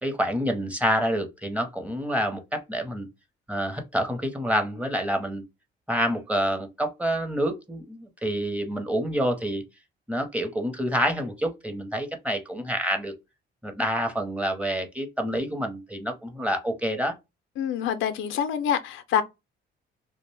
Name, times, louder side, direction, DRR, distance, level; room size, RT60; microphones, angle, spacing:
voice 1, 0.0-3.1 3.5-5.4 5.9-9.6 10.1-13.1 13.6-17.2, equal, 5° right, 0.7 m, -27 dB
voice 2, 17.6-19.2, left 8 dB, 80° left, 0.5 m, -26 dB
2.4 x 2.1 x 3.1 m
cardioid pair, 90°, 20 cm